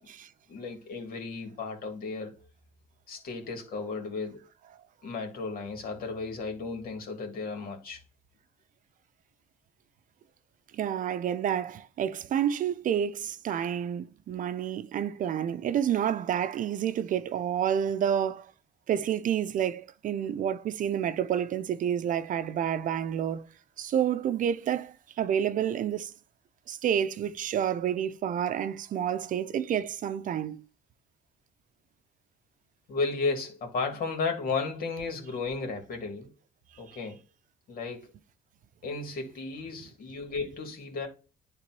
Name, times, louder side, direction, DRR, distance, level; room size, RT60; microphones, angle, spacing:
voice 1, 0.5-2.3 3.1-4.4 5.0-8.0 32.9-36.3 36.8-37.2 37.7-38.1 38.8-41.1, left 4 dB, 60° left, 2.9 m, -34 dB
voice 2, 10.7-18.5 18.9-23.5 23.8-26.1 26.7-30.6, right 9 dB, 50° right, 0.6 m, -29 dB
11.0 x 3.8 x 3.1 m
cardioid pair, 110°, 17 cm